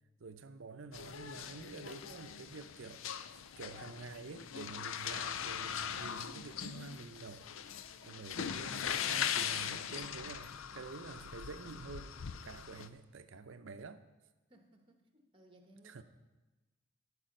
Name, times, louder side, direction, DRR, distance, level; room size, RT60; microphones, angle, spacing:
voice 1, 0.2-3.1 3.6-7.5 8.0-14.0 15.8-16.0, right 4 dB, 75° right, 0.6 m, -48 dB
sound 1, 0.9-12.9, left 8 dB, 80° left, 0.5 m, -40 dB
sound 2, 5.3-12.9, equal, 60° left, 4.1 m, -71 dB
voice 2, 14.5-16.0, right 1 dB, 25° right, 1.1 m, -62 dB
15.0 x 5.0 x 6.4 m
head